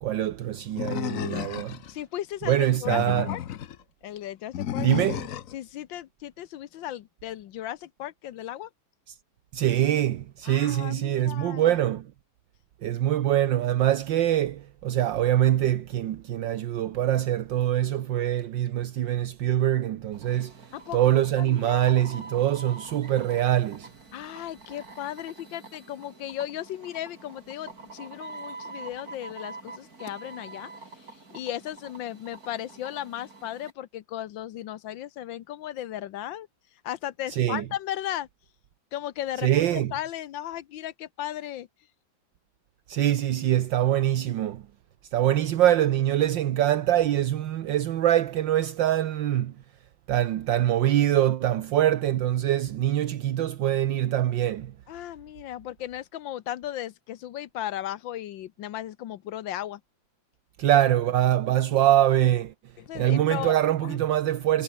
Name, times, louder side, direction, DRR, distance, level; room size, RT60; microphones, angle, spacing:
voice 1, 0.0-1.8 2.5-3.3 4.8-5.2 9.1-9.2 9.5-12.1 12.8-23.9 37.3-37.6 39.4-39.9 42.9-44.6 45.1-49.5 50.1-54.7 60.6-62.5 62.9-64.6, right 12 dB, 70° right, 1.6 m, -24 dB
Animal, 0.8-1.9 2.7-3.8 4.5-5.6, left 10 dB, 55° left, 1.0 m, -32 dB
voice 2, 1.9-3.0 3.3-3.4 4.0-8.7 10.4-11.8 20.7-22.2 24.1-30.7 31.0-36.5 36.8-38.3 38.9-41.7 54.9-59.8 62.8-63.5 63.8-64.0, left 12 dB, 75° left, 1.6 m, -36 dB
sound 1, 20.1-33.7, right 3 dB, 50° right, 4.5 m, -45 dB
omnidirectional pair, 2.1 m